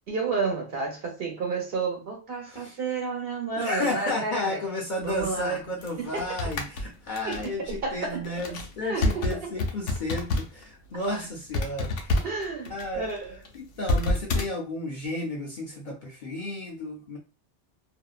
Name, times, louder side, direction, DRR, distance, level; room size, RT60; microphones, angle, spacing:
voice 1, 0.1-4.6 5.0-5.6 6.0-6.6 7.2-8.3 8.8-9.5 12.2-13.4, right 4 dB, 55° right, 1.0 m, -31 dB
voice 2, 2.5-2.8 3.6-12.1 12.7-13.1 13.5-17.2, left 1 dB, 55° left, 0.6 m, -32 dB
sound 1, 5.0-10.7 10.9-11.1 11.5-14.5, left 2 dB, 90° left, 0.9 m, -29 dB
2.7 x 2.1 x 2.4 m
omnidirectional pair, 1.2 m